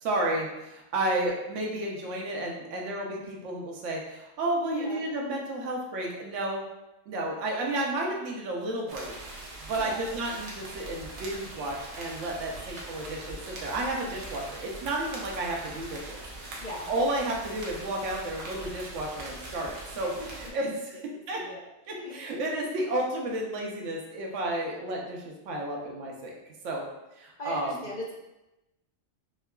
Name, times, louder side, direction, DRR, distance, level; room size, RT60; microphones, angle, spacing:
voice 1, 0.0-6.6 7.1-9.4 9.7-21.4 21.9-26.9 27.1-27.8, right 1 dB, 75° right, -1 dB, 1.0 m, -32 dB
voice 2, 4.6-5.0 9.7-10.0 16.6-16.9 19.9-20.5 21.0-21.6 22.0-22.2 27.4-28.1, left 1 dB, 45° left, -3 dB, 0.6 m, -40 dB
sound 1, 8.9-20.5, right 2 dB, 50° right, 0.7 m, -42 dB
4.5 x 2.2 x 2.2 m, 0.97 s
omnidirectional pair, 1.3 m